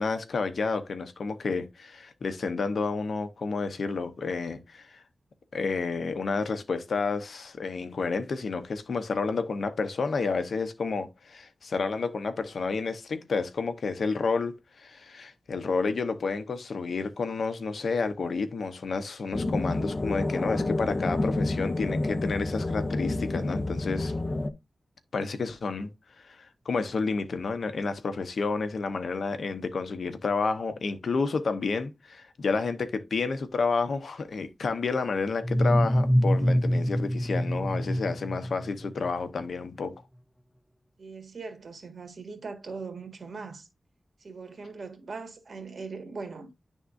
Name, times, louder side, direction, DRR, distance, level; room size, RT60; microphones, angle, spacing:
voice 1, 0.0-5.0 5.5-24.1 25.1-39.9, left 4 dB, 80° left, 0.8 m, -30 dB
sound 1, 19.3-24.5, left 2 dB, 40° left, 0.7 m, -29 dB
sound 2, 35.4-39.1, equal, ahead, 0.4 m, -25 dB
voice 2, 41.0-43.7 44.2-46.5, right 4 dB, 65° right, 1.5 m, -40 dB
10.5 x 3.6 x 2.5 m
wide cardioid pair, 75°, 0 cm